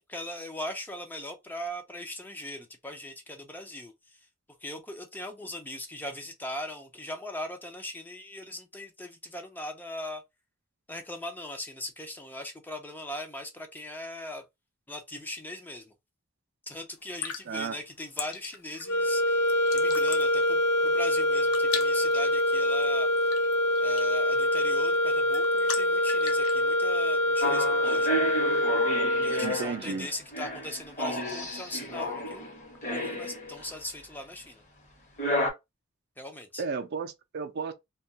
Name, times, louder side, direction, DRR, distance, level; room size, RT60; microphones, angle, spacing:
voice 1, 0.1-4.3 4.6-10.2 10.9-14.4 14.9-15.9 16.7-23.1 23.8-28.2 29.2-32.6 32.9-34.6 36.2-36.6, left 1 dB, 10° left, 0.4 m, -40 dB
sound 1, 17.0-26.6, left 7 dB, 85° left, 0.5 m, -41 dB
sound 2, 18.8-29.7, left 1 dB, 70° left, 0.9 m, -25 dB
sound 3, 27.4-33.8 35.2-35.5, equal, 35° left, 0.9 m, -32 dB
voice 2, 29.4-30.1 36.6-37.7, right 5 dB, 50° right, 0.4 m, -33 dB
2.3 x 2.2 x 2.7 m
head